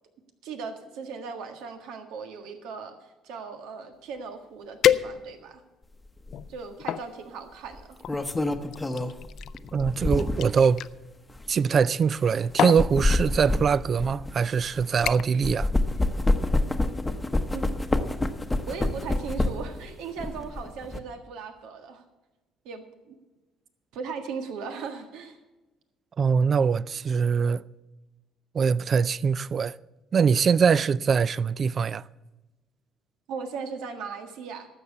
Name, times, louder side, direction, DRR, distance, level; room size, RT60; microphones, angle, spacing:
voice 1, 0.4-3.0 3.2-5.6 6.5-8.0 17.5-17.7 18.7-22.0 22.6-23.1 23.9-25.4 33.3-34.7, right 5 dB, 85° right, 1.6 m, -38 dB
sound 1, 4.2-4.3 4.8-5.6 6.2-7.1 8.0-10.9 12.0-12.3 12.6-12.9 13.8-13.9 14.4-14.6 15.1-15.5 15.8-16.1 16.5-16.6, left 10 dB, 65° left, 0.4 m, -28 dB
sound 2, 6.3-6.5 7.7-10.6 11.3-11.5 12.5-15.1 15.4-19.8 20.2-21.0, left 2 dB, 10° left, 0.9 m, -27 dB
voice 2, 9.7-10.8 11.5-15.7 26.2-27.6 28.5-29.8 30.1-32.0, right 6 dB, 40° right, 0.3 m, -23 dB
12.5 x 7.3 x 8.2 m
cardioid pair, 115°, 0 cm